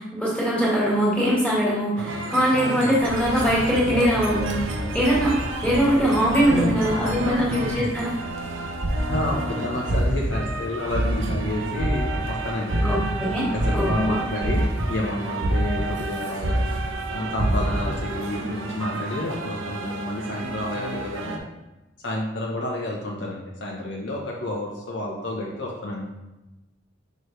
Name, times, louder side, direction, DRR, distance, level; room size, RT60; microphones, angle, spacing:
voice 1, 0.0-4.6 4.9-5.4 5.6-8.1 12.8-13.5 13.7-14.2, equal, 5° left, -7 dB, 1.8 m, -22 dB
sound 1, 2.0-21.4, right 2 dB, 90° right, 0.8 m, -32 dB
sound 2, 3.0-9.3, equal, 65° right, 1.2 m, -35 dB
voice 2, 6.5-7.4 7.8-7.9 9.1-13.0 13.3-16.6 17.1-21.4 22.0-26.1, left 1 dB, 70° left, -3 dB, 0.9 m, -30 dB
sound 3, 8.8-9.3 9.9-10.3 10.9-11.4 11.8-12.2 12.7-13.1 13.5-14.0 14.4-15.1 15.4-15.8 16.4-16.8 17.4-17.8, right 1 dB, 40° right, 0.8 m, -24 dB
6.4 x 4.7 x 3.2 m, 1.0 s
head